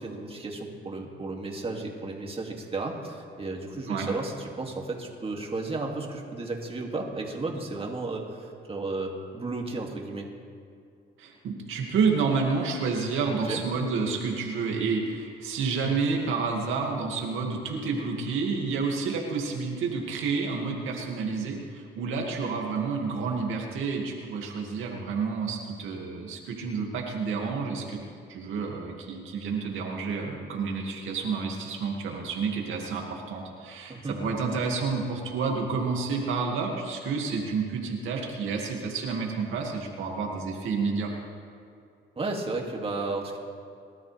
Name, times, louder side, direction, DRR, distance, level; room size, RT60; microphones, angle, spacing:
voice 1, 0.0-10.3 13.4-13.6 33.9-34.2 42.2-43.4, right 3 dB, 30° right, 0 dB, 2.5 m, -33 dB
voice 2, 11.2-28.0 28.3-41.1, right 4 dB, 85° right, 0 dB, 2.2 m, -29 dB
23.0 x 13.0 x 3.5 m, 2.4 s
cardioid pair, 90°, 20 cm